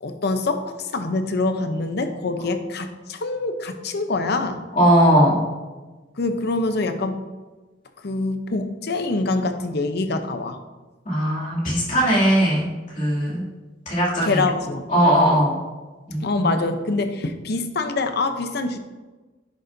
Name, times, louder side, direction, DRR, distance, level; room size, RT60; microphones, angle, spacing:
voice 1, 0.0-4.6 6.2-7.2 8.0-10.6 14.2-14.9 16.2-18.8, left 3 dB, 60° left, 7 dB, 0.7 m, -25 dB
voice 2, 4.8-5.4 11.0-12.7 12.9-13.4 13.9-14.4 14.9-15.6 16.1-16.5, equal, 45° left, -7 dB, 2.6 m, -19 dB
10.0 x 6.6 x 2.6 m, 1.2 s
head